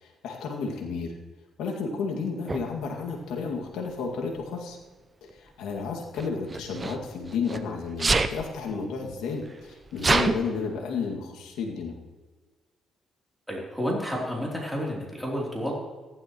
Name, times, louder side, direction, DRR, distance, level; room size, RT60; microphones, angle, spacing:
voice 1, 0.0-1.2 1.6-4.8 5.2-12.0, left 5 dB, 85° left, 0 dB, 2.1 m, -32 dB
Sneeze, 2.5-2.6 3.7-4.1 6.1-7.6 8.0-8.4 9.1-9.2 9.4-10.4, right 3 dB, 25° right, 0.7 m, -25 dB
voice 2, 13.5-15.8, equal, 5° left, -3 dB, 3.3 m, -30 dB
15.0 x 12.0 x 3.1 m, 1.3 s
cardioid pair, 90°, 0 cm